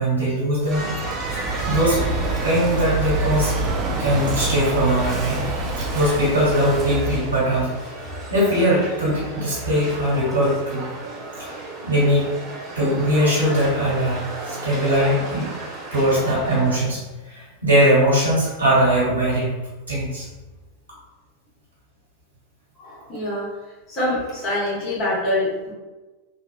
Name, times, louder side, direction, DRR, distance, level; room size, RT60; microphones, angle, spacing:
voice 1, 0.0-1.4 1.6-2.1 2.4-3.5 4.0-5.5 5.8-7.7 8.3-10.8 11.4-11.5 11.8-12.4 12.7-15.5 15.9-19.5 19.9-20.2, equal, 75° right, -7 dB, 1.5 m, -20 dB
Walk footsteps / Wind / Waves surf, 0.6-7.2, right 3 dB, 30° right, 0.5 m, -27 dB
sound 1, 0.7-16.8, right 2 dB, 10° right, 1.3 m, -34 dB
voice 2, 22.7-23.5 23.9-25.7, left 1 dB, 30° left, -8 dB, 1.4 m, -25 dB
3.0 x 2.4 x 2.3 m, 1.2 s
figure-of-eight pair, 90°, 0 cm